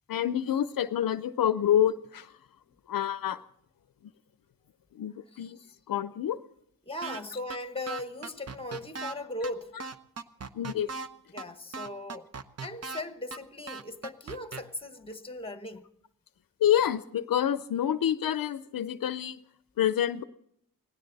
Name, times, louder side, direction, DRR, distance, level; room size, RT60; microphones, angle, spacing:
voice 1, 0.1-2.3 2.9-3.4 5.0-5.6 5.9-6.4 10.5-10.9 16.6-19.4 19.8-20.2, left 10 dB, 65° left, 0.6 m, -27 dB
voice 2, 5.3-5.7 6.8-9.7 11.3-12.3 12.6-15.8, left 1 dB, 15° left, 1.1 m, -38 dB
sound 1, 7.0-7.2 7.5-7.6 7.9-9.1 9.4-9.5 9.8-11.1 11.4-11.5 11.7-13.0 13.3-13.4 13.7-14.6, right 4 dB, 40° right, 0.8 m, -38 dB
19.0 x 17.0 x 4.0 m
wide cardioid pair, 95°, 37 cm